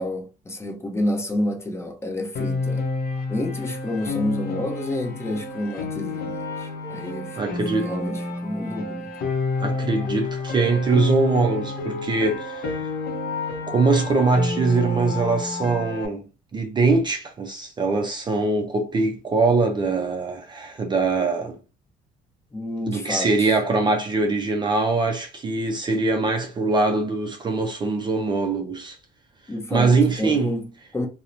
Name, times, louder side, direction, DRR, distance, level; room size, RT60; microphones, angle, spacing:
voice 1, 0.0-2.8 3.3-7.4 7.7-9.1 22.5-23.5 29.5-31.1, left 1 dB, 15° left, 0.6 m, -29 dB
Piano, 2.3-16.1, left 3 dB, 65° left, 0.6 m, -30 dB
Wind instrument woodwind instrument, 6.1-9.0 9.3-12.8, right 4 dB, 5° right, 1.1 m, -45 dB
voice 2, 7.4-7.9 9.6-12.9 13.7-16.3 16.5-21.6 22.9-29.0 29.7-30.6, right 3 dB, 25° right, 0.4 m, -22 dB
2.9 x 2.0 x 2.5 m
cardioid pair, 110°, 17 cm